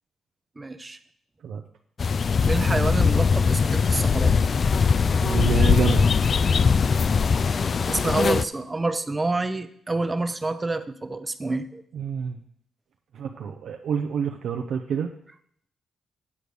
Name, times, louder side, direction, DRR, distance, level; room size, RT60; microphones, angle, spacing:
voice 1, 0.6-1.0 2.4-4.3 7.9-11.8, right 3 dB, 20° right, 11 dB, 0.6 m, -27 dB
sound 1, 2.0-8.4, left 5 dB, 45° left, 0.3 m, -21 dB
voice 2, 5.2-6.1 11.9-12.4 13.1-15.1, right 7 dB, 75° right, 3 dB, 0.6 m, -27 dB
8.4 x 5.2 x 6.3 m, 0.66 s
cardioid pair, 105°, 0 cm